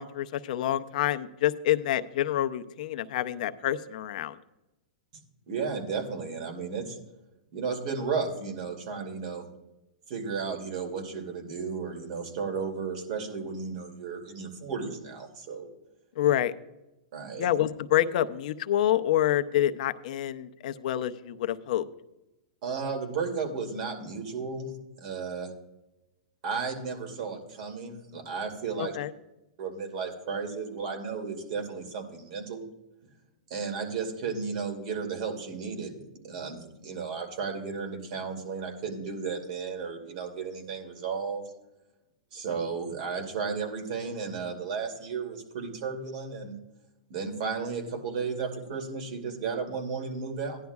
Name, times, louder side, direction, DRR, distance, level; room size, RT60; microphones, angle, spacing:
voice 1, 0.0-4.4 16.2-16.5 17.4-21.8 28.8-29.1, left 12 dB, 65° left, 11 dB, 0.6 m, -27 dB
voice 2, 5.5-7.0 7.5-9.5 10.1-15.7 17.1-17.5 22.6-24.7 25.0-25.5 26.4-28.9 29.6-32.7 33.5-36.0 36.2-41.4 42.3-46.6 47.1-50.6, right 5 dB, 60° right, 4 dB, 2.5 m, -34 dB
15.5 x 10.5 x 2.4 m, 0.96 s
hypercardioid pair, 130°, 5 cm